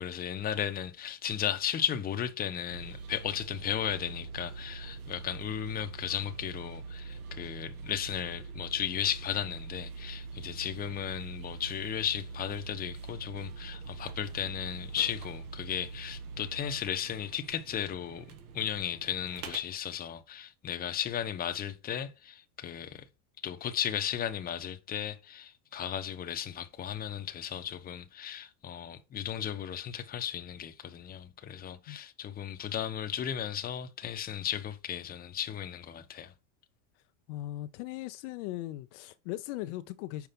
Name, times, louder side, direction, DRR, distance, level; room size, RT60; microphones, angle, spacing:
voice 1, 0.0-18.3 18.5-23.0 23.4-36.3, left 9 dB, 20° left, 0.8 m, -35 dB
sound 1, 2.7-19.6, right 4 dB, 85° right, 1.9 m, -44 dB
voice 2, 37.3-40.3, left 15 dB, 55° left, 0.6 m, -38 dB
5.9 x 4.8 x 5.2 m
supercardioid pair, 130°, 43 cm